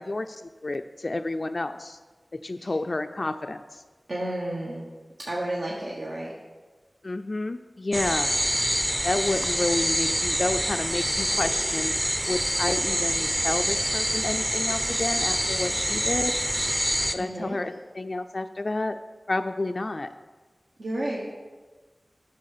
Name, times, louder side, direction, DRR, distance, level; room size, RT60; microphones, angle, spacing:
voice 1, 0.0-2.0 2.4-3.8 7.0-8.3 9.0-16.3 17.1-19.0 19.3-20.1, left 2 dB, 55° left, 7 dB, 0.4 m, -30 dB
voice 2, 4.1-4.8 5.2-6.3 16.9-17.6 20.8-21.2, right 1 dB, 75° right, -5 dB, 1.3 m, -32 dB
sound 1, 7.9-17.1, equal, 10° right, 0.6 m, -26 dB
8.3 x 5.8 x 6.7 m, 1.3 s
wide cardioid pair, 60°, 0 cm